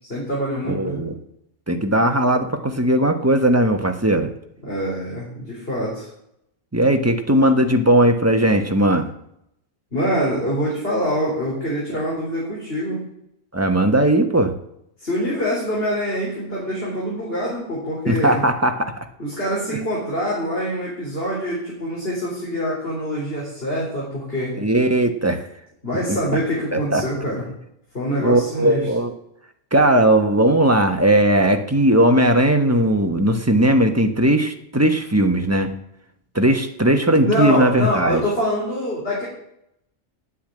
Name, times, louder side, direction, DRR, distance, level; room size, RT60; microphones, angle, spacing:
voice 1, 0.1-1.0 4.6-6.1 9.9-13.0 15.0-18.4 19.2-24.6 25.8-27.4 27.9-28.9 37.2-39.3, equal, 45° left, -6 dB, 4.5 m, -25 dB
voice 2, 0.6-1.1 1.7-4.3 6.7-9.1 13.5-14.5 18.1-18.9 24.6-25.4 26.1-26.2 26.7-27.0 28.2-29.1 29.7-35.7 36.3-38.2, right 1 dB, 10° right, 5 dB, 1.1 m, -18 dB
9.9 x 8.5 x 8.7 m, 0.77 s
omnidirectional pair, 1.3 m